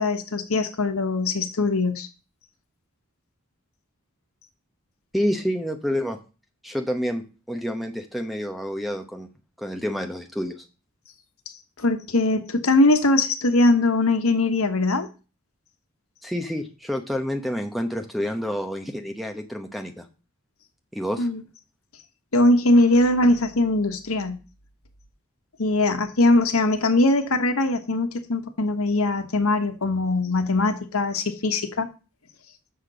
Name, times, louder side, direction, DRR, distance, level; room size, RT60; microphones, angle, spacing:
voice 1, 0.0-2.1 11.8-15.1 21.2-21.4 22.3-24.4 25.6-31.9, left 2 dB, 85° left, 1.2 m, -21 dB
voice 2, 5.1-6.2 6.6-9.3 9.6-10.6 16.2-20.1 20.9-21.3, equal, ahead, 0.9 m, -28 dB
6.7 x 5.8 x 6.7 m
head